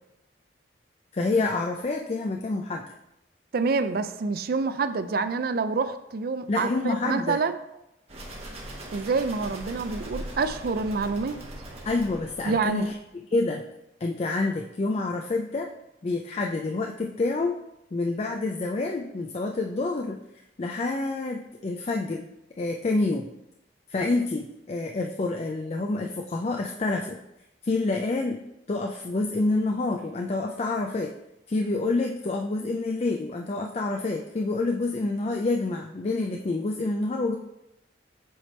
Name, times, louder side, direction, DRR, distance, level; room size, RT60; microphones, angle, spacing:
voice 1, 1.1-2.8 6.5-7.4 11.9-13.6 14.0-15.7 16.0-17.6 17.9-20.2 20.6-22.3 22.6-23.3 23.9-27.2 27.6-28.4 28.7-31.1 31.5-37.4, left 3 dB, 35° left, 2 dB, 0.4 m, -27 dB
voice 2, 3.5-7.6 8.9-11.4 12.5-12.9, right 4 dB, 55° right, 11 dB, 0.4 m, -27 dB
sound 1, 8.1-13.1, right 1 dB, 35° right, 1.2 m, -40 dB
7.8 x 3.3 x 4.3 m, 0.86 s
head